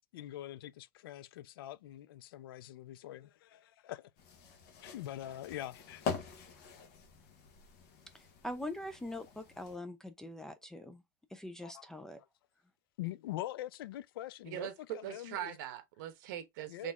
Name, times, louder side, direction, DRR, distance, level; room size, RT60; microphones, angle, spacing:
voice 1, 0.1-4.1 4.8-6.0 11.6-11.9 12.2-12.3 13.0-15.6 16.7-16.9, left 14 dB, 80° left, 0.4 m, -44 dB
sound 1, 4.2-9.8, left 6 dB, 45° left, 1.3 m, -44 dB
voice 2, 8.4-11.0 11.3-12.2, left 1 dB, 5° left, 0.3 m, -43 dB
voice 3, 14.4-16.9, right 12 dB, 55° right, 1.0 m, -41 dB
4.1 x 3.1 x 3.5 m
supercardioid pair, 160°, 12 cm